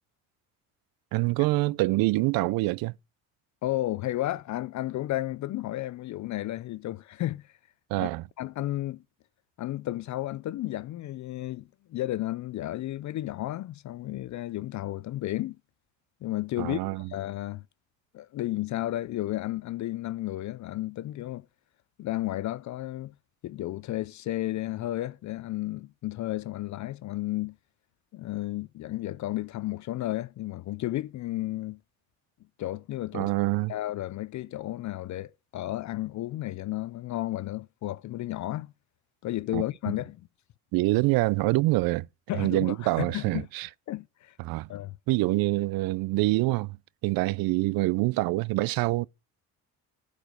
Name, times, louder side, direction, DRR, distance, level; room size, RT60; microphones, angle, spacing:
voice 1, 1.1-2.9 7.9-8.2 16.6-17.1 33.1-33.7 39.5-39.6 40.7-42.1 42.3-43.7 44.4-44.7 45.1-46.8 47.0-49.1, right 20 dB, 75° right, 0.5 m, -25 dB
voice 2, 3.6-7.5 8.0-8.1 8.4-9.0 9.6-15.6 16.2-17.6 18.1-21.5 22.0-23.1 23.4-27.6 28.1-31.8 32.6-33.3 33.7-38.7 39.2-40.2 42.3-43.5 43.9-44.4 44.7-44.9, left 15 dB, 50° left, 0.5 m, -33 dB
12.0 x 4.9 x 5.1 m
cardioid pair, 105°, 37 cm